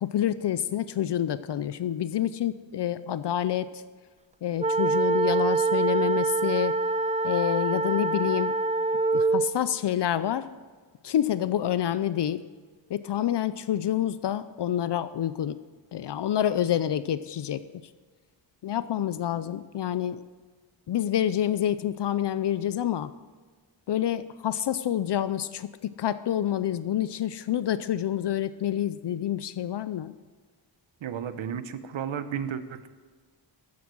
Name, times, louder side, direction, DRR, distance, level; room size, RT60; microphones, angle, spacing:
voice 1, 0.0-3.8 4.4-6.8 7.2-8.6 9.1-10.5 11.0-12.4 12.9-15.6 15.9-17.8 18.6-20.2 20.9-23.1 23.9-30.1, left 11 dB, 65° left, 14 dB, 0.5 m, -28 dB
sound 1, 4.6-9.5, right 3 dB, 15° right, 0.3 m, -25 dB
voice 2, 31.0-32.9, right 8 dB, 90° right, 11 dB, 0.9 m, -33 dB
13.5 x 9.6 x 6.2 m, 1.4 s
wide cardioid pair, 135°, 46 cm